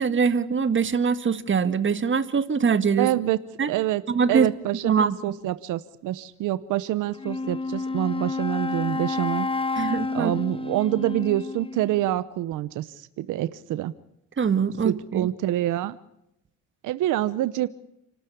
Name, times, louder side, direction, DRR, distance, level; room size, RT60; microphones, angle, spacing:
voice 1, 0.0-3.1 3.6-3.7 4.1-4.5 4.8-5.2 9.8-10.3 14.4-15.3, right 6 dB, 40° right, 12 dB, 1.9 m, -23 dB
voice 2, 3.0-3.4 3.7-4.0 4.3-9.5 10.1-13.9 14.8-16.0 16.8-17.7, right 14 dB, 90° right, 15 dB, 1.0 m, -26 dB
Wind instrument woodwind instrument, 7.1-12.1, left 3 dB, 20° left, 0.9 m, -30 dB
30.0 x 13.0 x 10.0 m, 0.80 s
cardioid pair, 90°, 30 cm